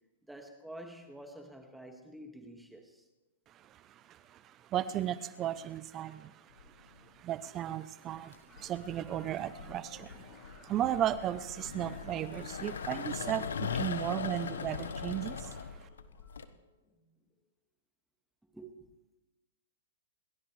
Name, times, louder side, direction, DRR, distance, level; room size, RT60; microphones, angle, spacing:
voice 1, 0.3-3.1 18.5-18.7, right 1 dB, 5° right, 4 dB, 1.9 m, -48 dB
voice 2, 3.5-15.9, right 11 dB, 30° right, 15 dB, 0.6 m, -36 dB
sound 1, 6.6-7.0 8.2-16.4, left 6 dB, 80° left, 1.2 m, -40 dB
sound 2, 8.5-17.4, left 1 dB, 20° left, 7.2 m, -59 dB
28.0 x 13.0 x 3.3 m, 1.1 s
hypercardioid pair, 130°, 0 cm